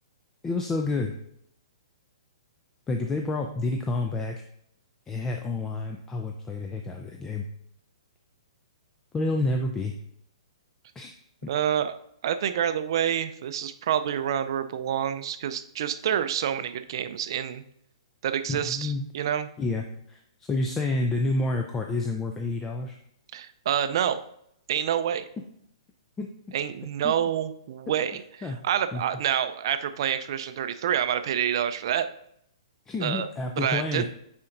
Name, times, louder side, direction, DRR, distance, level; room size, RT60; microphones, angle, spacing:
voice 1, 0.4-1.2 2.9-4.4 5.1-7.4 9.1-9.9 11.0-11.1 11.4-11.5 18.5-19.1 19.6-23.0 26.2-26.3 27.0-27.1 28.4-28.6 28.9-29.0 32.9-34.1, left 2 dB, 15° left, 3 dB, 0.5 m, -29 dB
voice 2, 11.5-11.9 12.2-17.6 18.2-19.5 23.3-24.2 24.7-25.2 26.5-32.1 33.0-33.3 33.6-34.1, right 9 dB, 55° right, 10 dB, 0.5 m, -27 dB
9.6 x 4.3 x 2.6 m, 0.73 s
hypercardioid pair, 125°, 3 cm